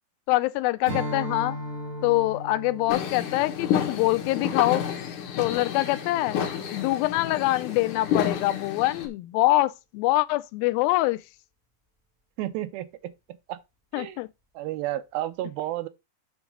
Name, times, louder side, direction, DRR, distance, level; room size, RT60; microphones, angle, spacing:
voice 1, 0.3-1.6 2.0-4.8 5.4-6.4 6.7-11.2 13.9-14.3, left 18 dB, 85° left, 2.3 m, -24 dB
Strum, 0.8-5.5, equal, 25° right, 2.1 m, -37 dB
sound 1, 2.9-9.1, left 8 dB, 65° left, 2.6 m, -30 dB
voice 2, 12.4-13.1 13.5-13.6 14.0-14.2 14.5-15.9, right 14 dB, 80° right, 2.5 m, -31 dB
7.1 x 3.9 x 5.9 m
omnidirectional pair, 4.3 m